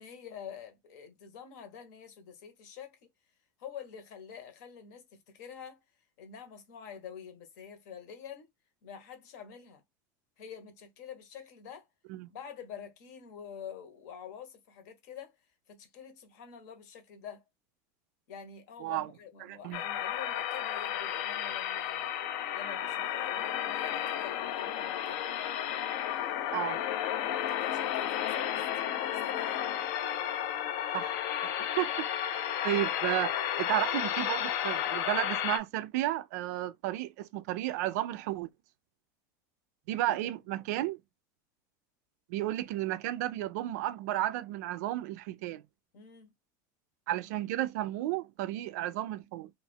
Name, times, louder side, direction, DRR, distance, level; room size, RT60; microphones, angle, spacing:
voice 1, 0.0-3.0 3.6-5.8 6.2-8.5 8.8-9.8 10.4-11.9 12.3-15.3 15.7-17.4 18.3-22.1 22.5-25.3 27.2-29.7 40.1-40.2 45.9-46.3, left 8 dB, 60° left, 1.0 m, -47 dB
voice 2, 19.4-19.8 26.5-26.8 30.9-33.3 33.6-38.5 39.9-41.0 42.3-45.6 47.1-49.5, right 15 dB, 60° right, 0.4 m, -33 dB
sound 1, 19.7-35.6, left 10 dB, 45° left, 0.4 m, -33 dB
2.4 x 2.3 x 3.3 m
supercardioid pair, 175°, 10 cm